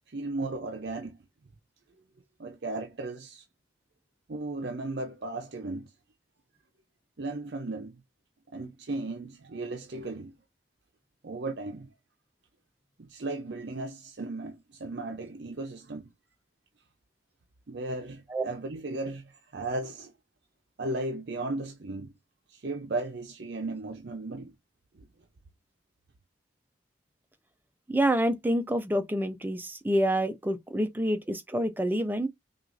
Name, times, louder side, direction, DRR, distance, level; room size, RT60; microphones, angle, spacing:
voice 1, 0.1-1.2 2.4-3.4 4.3-5.9 7.2-8.0 8.5-10.3 11.2-11.9 13.0-16.1 17.7-20.1 20.8-22.1 22.5-24.5, right 2 dB, 60° right, 0.6 m, -35 dB
voice 2, 27.9-32.3, right 1 dB, 10° right, 0.4 m, -27 dB
5.9 x 2.4 x 2.5 m
head